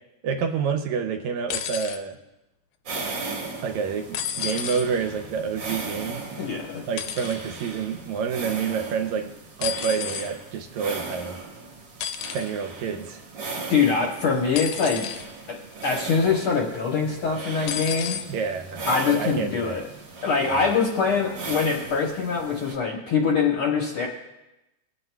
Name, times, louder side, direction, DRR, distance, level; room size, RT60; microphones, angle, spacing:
voice 1, 0.2-2.2 3.6-6.2 6.9-9.3 9.6-11.4 12.3-13.2 18.3-18.8 19.1-19.8 20.4-20.6, right 6 dB, 80° right, 5 dB, 1.9 m, -28 dB
sound 1, 1.5-2.0 4.1-4.9 7.0-7.4 9.6-10.3 12.0-12.5 14.6-15.3 15.8-16.1 17.7-18.3 19.3-19.4, left 9 dB, 90° left, 2.2 m, -31 dB
sound 2, 2.9-22.7, right 3 dB, 50° right, 1.4 m, -37 dB
voice 2, 6.4-6.8 13.7-15.1 15.5-15.6 15.8-18.2 18.9-19.8 20.2-24.1, left 5 dB, 65° left, -1 dB, 1.4 m, -23 dB
21.5 x 7.7 x 2.3 m, 0.96 s
omnidirectional pair, 3.5 m